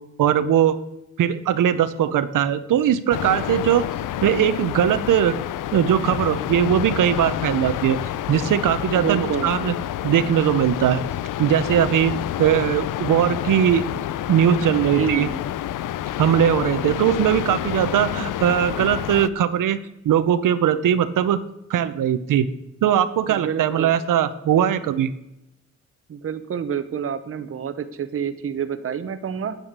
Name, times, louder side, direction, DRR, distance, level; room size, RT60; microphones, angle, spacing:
voice 1, 0.2-0.8 1.2-3.9 4.2-5.4 5.7-8.0 8.3-9.7 10.0-11.0 11.4-12.1 12.4-13.8 14.3-15.3 16.2-19.8 20.0-21.4 21.7-22.5 22.8-25.1, right 9 dB, 90° right, 12 dB, 0.7 m, -20 dB
sound 1, 3.1-19.3, left 12 dB, 80° left, 0.5 m, -28 dB
voice 2, 8.9-9.5 14.7-15.4 23.3-24.0 26.1-29.6, right 8 dB, 45° right, 11 dB, 0.8 m, -28 dB
9.1 x 9.0 x 6.6 m, 0.88 s
wide cardioid pair, 165°, 31 cm